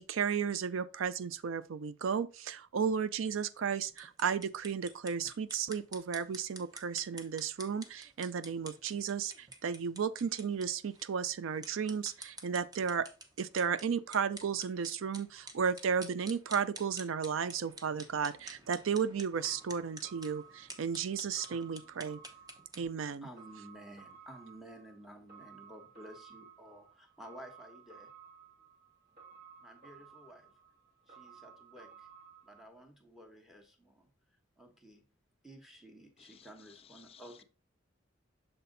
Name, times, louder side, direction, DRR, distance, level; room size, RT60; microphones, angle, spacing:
voice 1, 0.0-13.1 13.4-22.2 22.8-23.3, right 6 dB, 80° right, 0.4 m, -34 dB
sound 1, 3.9-22.8, right 2 dB, 20° right, 0.9 m, -50 dB
sound 2, 19.4-32.7, right 6 dB, 50° right, 1.8 m, -56 dB
voice 2, 23.2-28.1 29.6-30.6 31.1-32.1 32.4-34.1 34.6-35.1 35.4-37.4, equal, ahead, 1.2 m, -53 dB
voice 3, 36.2-37.4, left 8 dB, 30° left, 0.4 m, -58 dB
6.6 x 4.2 x 3.9 m
head